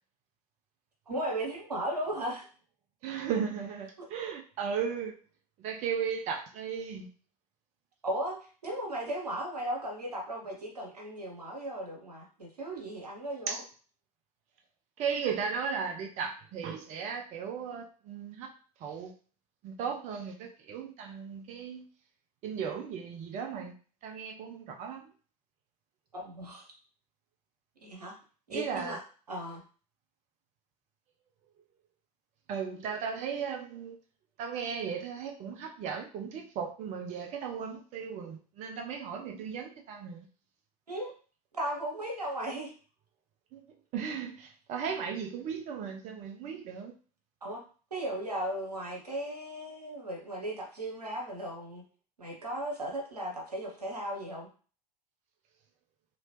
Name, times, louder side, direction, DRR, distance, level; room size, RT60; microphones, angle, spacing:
voice 1, 1.1-2.5 8.0-8.4 8.6-13.6 26.1-26.7 27.8-28.1 28.5-29.0 29.3-29.6 40.9-41.1 41.5-42.7 47.4-47.6 47.9-51.8 52.2-54.5, right 1 dB, 85° right, 0 dB, 0.8 m, -36 dB
voice 2, 3.0-5.1 5.6-7.1 13.5-13.6 15.0-18.5 18.8-19.1 19.6-21.9 22.4-23.7 24.0-25.1 28.5-29.0 32.5-34.0 34.4-40.3 43.5-43.6 43.9-46.9, right 6 dB, 35° right, 4 dB, 0.5 m, -36 dB
2.9 x 2.8 x 2.9 m, 0.39 s
figure-of-eight pair, 70°, 20 cm